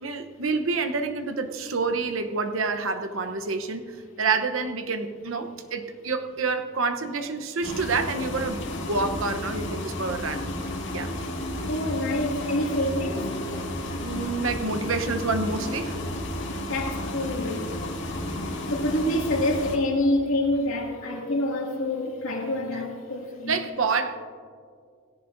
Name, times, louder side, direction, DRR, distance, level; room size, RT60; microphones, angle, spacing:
voice 1, 0.0-10.4 10.9-11.1 14.0-16.0 23.5-24.2, right 4 dB, 75° right, 7 dB, 0.9 m, -28 dB
sound 1, 7.6-19.8, left 1 dB, 65° left, 2.0 m, -32 dB
voice 2, 11.7-13.3 16.7-17.7 18.1-18.4 18.7-23.6, left 1 dB, 80° left, 0 dB, 2.2 m, -27 dB
17.5 x 16.5 x 2.6 m, 2.2 s
head